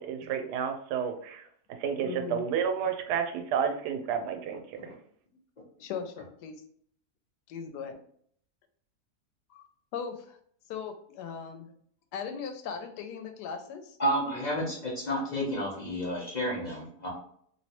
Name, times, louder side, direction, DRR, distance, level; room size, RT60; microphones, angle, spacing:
voice 1, 0.0-1.5 1.8-4.9, right 7 dB, 85° right, 6 dB, 1.1 m, -31 dB
voice 2, 2.0-2.4 5.8-6.5 7.5-8.0 9.5-9.7 9.9-10.4 10.7-11.7 12.1-14.0, left 6 dB, 85° left, 7 dB, 1.1 m, -38 dB
voice 3, 14.0-17.1, equal, 40° left, -3 dB, 0.6 m, -31 dB
3.1 x 2.8 x 2.8 m, 0.63 s
omnidirectional pair, 1.7 m